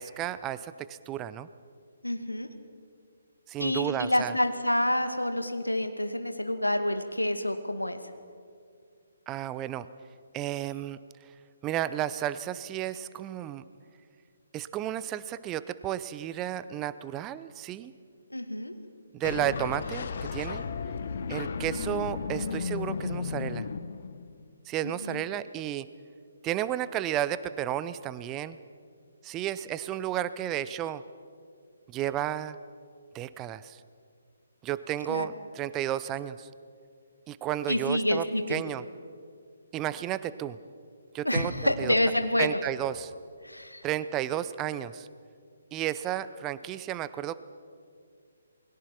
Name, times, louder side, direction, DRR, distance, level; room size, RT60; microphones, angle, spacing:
voice 1, 0.0-1.5 3.5-4.3 9.3-9.9 10.3-11.0 11.6-13.6 14.5-17.9 19.1-20.6 21.3-23.7 24.7-25.9 26.4-28.6 29.2-31.0 31.9-32.6 33.1-33.8 34.6-36.5 37.3-38.8 39.7-40.6 41.1-41.9 42.4-43.1 43.8-45.1 45.7-47.4, right 12 dB, 20° right, 15 dB, 0.6 m, -32 dB
voice 2, 2.0-2.5 3.6-8.0 18.3-18.7 24.8-25.2 35.1-35.3 37.7-38.6 41.2-42.6 43.4-43.9, left 1 dB, 85° left, 8 dB, 2.1 m, -28 dB
sound 1, 19.2-24.4, left 5 dB, 50° left, 1.3 m, -34 dB
28.5 x 21.5 x 5.9 m, 2.2 s
figure-of-eight pair, 135°, 0 cm